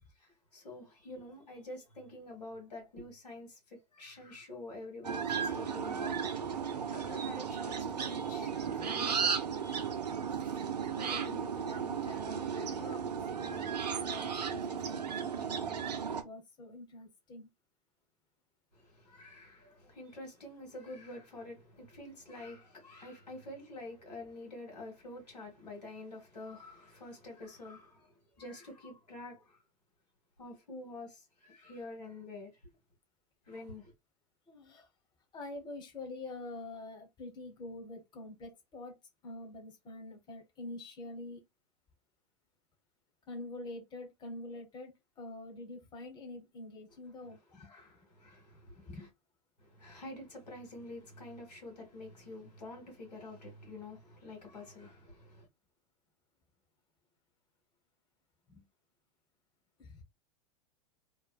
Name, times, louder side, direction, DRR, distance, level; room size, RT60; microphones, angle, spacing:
voice 1, 0.5-6.2 6.9-9.3 9.6-9.9 18.8-29.6 30.4-32.5 33.5-33.9 47.2-49.1 49.6-55.5, left 2 dB, 85° left, 1.5 m, -48 dB
sound 1, 5.0-16.2, right 7 dB, 90° right, 0.5 m, -35 dB
voice 2, 10.9-13.1 13.3-15.8 16.1-17.5 34.5-34.9 35.3-39.0 39.2-41.4 43.3-47.7 48.9-49.1 58.5-58.6 59.8-60.0, left 2 dB, 20° left, 1.0 m, -46 dB
3.0 x 2.1 x 2.2 m
hypercardioid pair, 95°, 20 cm